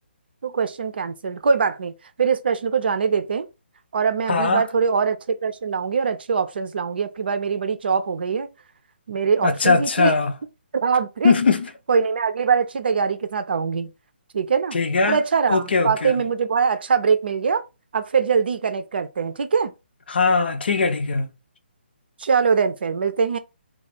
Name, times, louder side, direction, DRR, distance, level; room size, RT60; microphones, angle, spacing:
voice 1, 0.4-3.5 3.9-8.5 9.1-10.2 10.7-11.3 11.9-13.9 14.3-14.8 15.1-17.6 17.9-19.7 22.2-23.4, right 6 dB, 60° right, 0.5 m, -22 dB
voice 2, 4.3-4.6 9.4-10.3 11.2-11.7 14.7-15.2 15.5-16.1 20.1-21.2, left 4 dB, 65° left, 0.6 m, -20 dB
2.4 x 2.3 x 4.0 m
hypercardioid pair, 160°, 6 cm